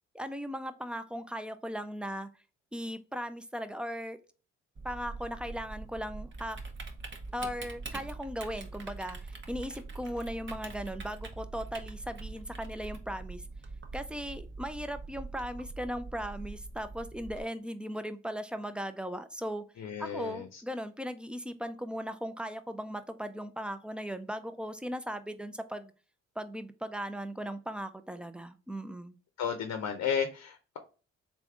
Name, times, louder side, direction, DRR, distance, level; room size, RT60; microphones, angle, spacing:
voice 1, 0.1-2.3 2.7-4.2 4.8-6.6 7.3-13.4 13.9-19.6 20.0-25.9 26.4-29.1, equal, 5° right, 0.4 m, -38 dB
Typing, 4.8-17.4, right 3 dB, 40° right, 0.9 m, -43 dB
voice 2, 19.8-20.6 29.4-30.8, left 7 dB, 60° left, 0.7 m, -33 dB
3.5 x 2.6 x 3.4 m
supercardioid pair, 55°, 30 cm